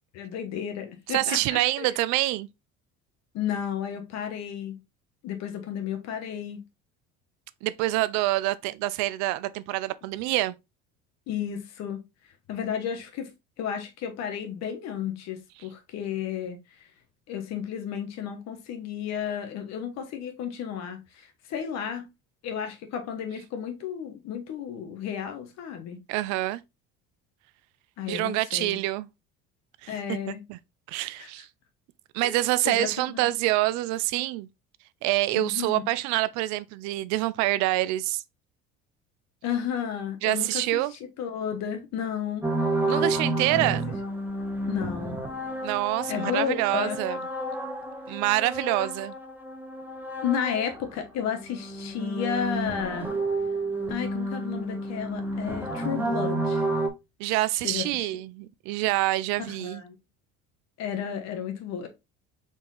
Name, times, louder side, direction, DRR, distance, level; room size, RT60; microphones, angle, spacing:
voice 1, 0.1-1.9 3.3-4.8 5.2-6.6 11.3-12.0 12.5-13.3 13.6-16.9 17.3-22.1 22.4-26.0 28.0-28.8 29.9-30.4 31.2-31.3 32.2-32.3 32.6-33.3 35.3-35.8 39.4-42.5 44.7-45.2 46.1-47.0 50.2-53.1 53.9-56.7 57.6-58.1 59.4-60.0 60.8-61.9, left 8 dB, 60° left, 1.2 m, -32 dB
voice 2, 1.1-2.5 7.6-10.5 26.1-26.6 28.1-29.1 29.8-30.2 30.5-30.6 30.9-31.5 32.1-34.5 35.0-38.2 40.2-40.9 42.9-43.9 45.6-47.2 48.1-49.1 57.2-59.8, right 17 dB, 70° right, 0.4 m, -26 dB
sound 1, 42.4-51.0 51.3-56.9, right 2 dB, 5° right, 0.9 m, -30 dB
4.4 x 3.5 x 2.9 m
supercardioid pair, 80°, 30 cm